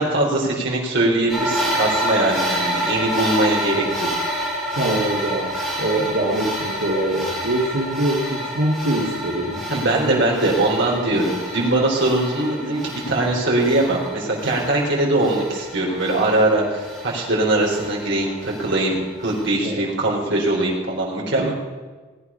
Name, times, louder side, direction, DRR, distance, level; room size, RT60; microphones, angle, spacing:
voice 1, 0.0-4.1 9.7-21.5, right 2 dB, 60° right, -2 dB, 3.8 m, -21 dB
sound 1, 1.3-19.5, equal, 5° right, 6.1 m, -29 dB
voice 2, 4.7-10.2 10.8-11.0 19.6-19.7 21.4-21.5, right 1 dB, 80° right, -4 dB, 2.2 m, -24 dB
19.0 x 9.9 x 5.6 m, 1.4 s
head